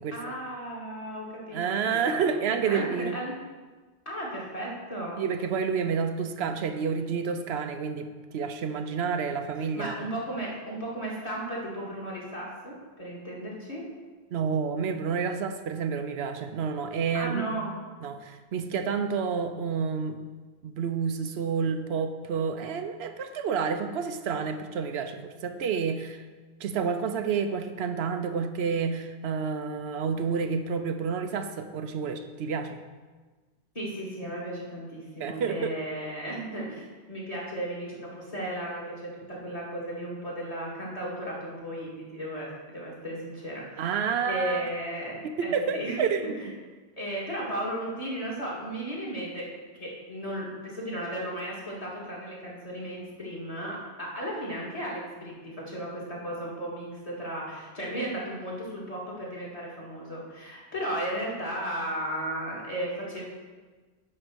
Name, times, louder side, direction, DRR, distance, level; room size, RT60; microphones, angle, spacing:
voice 1, 0.1-1.6 1.9-2.3 2.6-3.3 4.1-5.2 9.7-13.8 17.1-17.8 33.7-46.0 46.3-46.5 47.0-49.5 49.8-63.3, right 1 dB, 35° left, -6 dB, 2.3 m, -35 dB
voice 2, 1.5-3.2 5.2-10.0 14.3-17.4 18.0-20.2 20.6-26.2 26.6-32.8 35.2-35.7 43.8-44.6 45.2-46.5, right 6 dB, 80° right, 7 dB, 0.9 m, -29 dB
10.0 x 3.9 x 6.1 m, 1.3 s
omnidirectional pair, 1.1 m